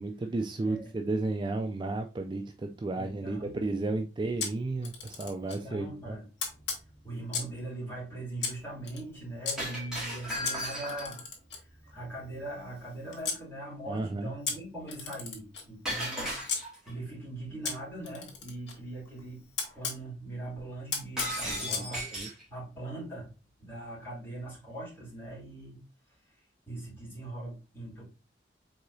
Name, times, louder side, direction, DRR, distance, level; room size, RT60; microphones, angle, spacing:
voice 1, 0.0-6.2 13.9-14.3 21.5-22.3, right 2 dB, 25° right, 0.3 m, -33 dB
voice 2, 0.6-0.9 2.9-4.0 5.4-6.3 7.0-11.2 11.5-22.0 22.5-23.3 23.6-25.8 26.2-26.3 26.7-28.0, right 2 dB, 15° left, 2.5 m, -41 dB
Camera, 4.4-5.6 6.4-7.6 8.4-9.6 10.4-13.4 14.4-16.6 17.6-20.0 20.9-21.9, left 5 dB, 85° left, 1.5 m, -37 dB
Shatter, 9.6-11.2 15.9-16.9 21.2-22.4, equal, 5° right, 2.0 m, -35 dB
4.8 x 3.7 x 2.6 m
head